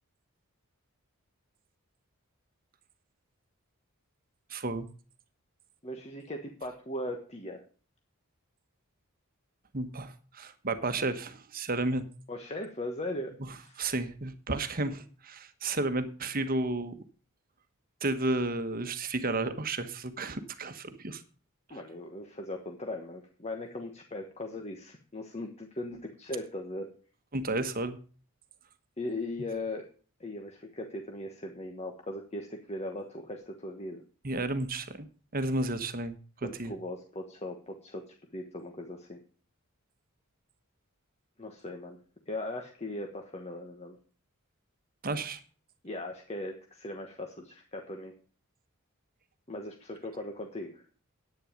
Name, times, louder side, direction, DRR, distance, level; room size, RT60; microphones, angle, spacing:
voice 1, 4.5-4.9 9.7-12.1 13.8-16.9 18.0-21.2 27.3-28.0 34.2-35.1 35.3-36.2 36.6-36.7 45.0-45.4, right 2 dB, 40° right, 10 dB, 1.2 m, -32 dB
voice 2, 5.8-7.6 12.3-13.8 21.7-26.9 29.0-29.9 30.2-34.0 36.4-39.2 41.4-42.0 42.3-44.0 45.8-48.1 49.5-50.9, left 1 dB, 30° left, 3 dB, 1.2 m, -39 dB
10.0 x 9.3 x 5.2 m, 0.40 s
head